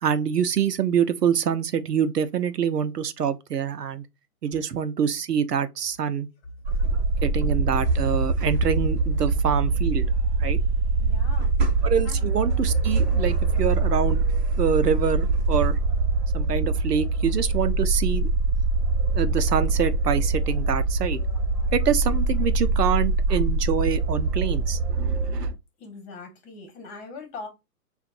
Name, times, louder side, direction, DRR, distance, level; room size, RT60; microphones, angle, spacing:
voice 1, 0.0-4.0 4.4-6.3 7.2-10.0 10.4-10.6 11.8-14.2 14.6-15.8 16.3-18.3 19.1-21.2 21.7-25.5, right 7 dB, 80° right, 0.8 m, -25 dB
sound 1, 6.7-25.5, right 3 dB, 45° right, 1.1 m, -23 dB
voice 2, 11.0-11.5 12.0-12.2 25.8-27.5, left 3 dB, 25° left, 1.5 m, -41 dB
6.6 x 2.5 x 2.5 m
hypercardioid pair, 135°, 47 cm